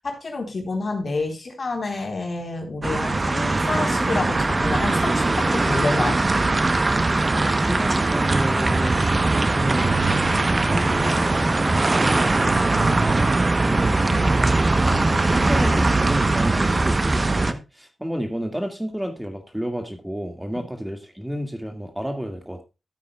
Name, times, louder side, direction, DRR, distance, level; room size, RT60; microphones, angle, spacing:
voice 1, 0.0-6.2 12.7-13.1 14.1-14.4 14.9-15.2, left 3 dB, 55° left, 2 dB, 4.0 m, -29 dB
sound 1, 2.8-17.5, right 2 dB, 40° right, 1.0 m, -20 dB
voice 2, 7.1-9.0 9.4-12.1 12.8-13.2 13.6-14.9 15.2-22.6, equal, 10° right, 5 dB, 2.1 m, -31 dB
14.5 x 8.4 x 2.4 m, 0.27 s
cardioid pair, 50°, 0 cm